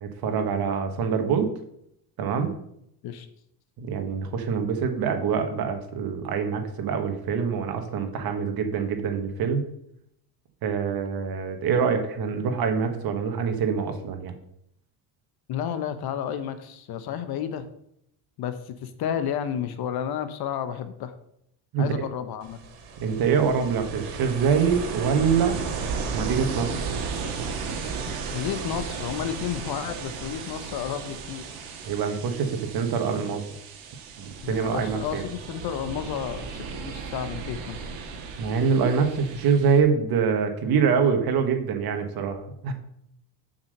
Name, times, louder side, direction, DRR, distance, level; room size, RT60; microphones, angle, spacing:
voice 1, 0.0-1.5 2.2-2.6 3.8-9.6 10.6-14.3 21.7-22.0 23.0-25.6 26.1-26.7 31.9-33.4 34.2-35.2 38.4-42.7, right 6 dB, 45° right, 6 dB, 1.5 m, -25 dB
voice 2, 15.5-17.7 18.4-21.1 21.8-22.6 28.3-31.5 34.4-37.8, left 9 dB, 50° left, 11 dB, 0.9 m, -31 dB
Ocean, 22.4-39.8, right 5 dB, 85° right, 2.2 m, -35 dB
7.8 x 5.9 x 6.5 m, 0.74 s
cardioid pair, 155°, 49 cm